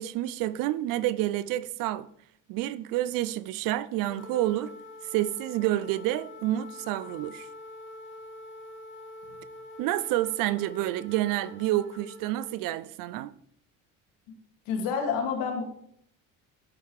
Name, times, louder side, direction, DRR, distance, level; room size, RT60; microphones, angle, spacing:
voice 1, 0.0-2.1 2.5-4.7 5.1-7.5 9.8-13.3, right 14 dB, 70° right, 0.6 m, -29 dB
sound 1, 4.0-12.5, left 2 dB, 35° left, 1.9 m, -45 dB
voice 2, 14.7-15.7, left 6 dB, 80° left, 2.5 m, -28 dB
11.5 x 5.6 x 4.8 m
cardioid pair, 155°, 34 cm